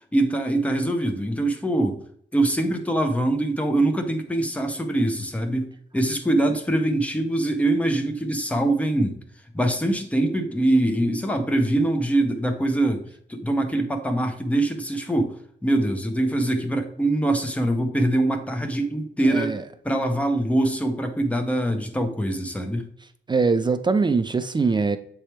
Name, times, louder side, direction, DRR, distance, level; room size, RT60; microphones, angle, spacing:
voice 1, 0.1-2.0 2.3-9.2 9.5-15.4 15.6-19.6 19.8-22.9, right 1 dB, 5° left, 6 dB, 0.7 m, -23 dB
voice 2, 19.3-19.6 23.3-25.0, right 4 dB, 25° right, 10 dB, 0.3 m, -22 dB
7.2 x 3.4 x 4.4 m, 0.65 s
wide cardioid pair, 175°, 20 cm